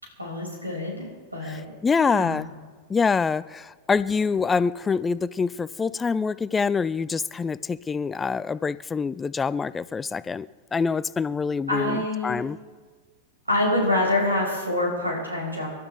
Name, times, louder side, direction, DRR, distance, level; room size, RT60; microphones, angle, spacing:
voice 1, 0.2-1.6 2.0-2.4 11.7-12.4 13.5-15.7, left 1 dB, 85° right, -2 dB, 5.7 m, -26 dB
voice 2, 1.4-2.5 2.9-12.6, left 5 dB, 15° left, 18 dB, 0.3 m, -25 dB
28.0 x 12.5 x 3.4 m, 1.4 s
figure-of-eight pair, 90°, 0 cm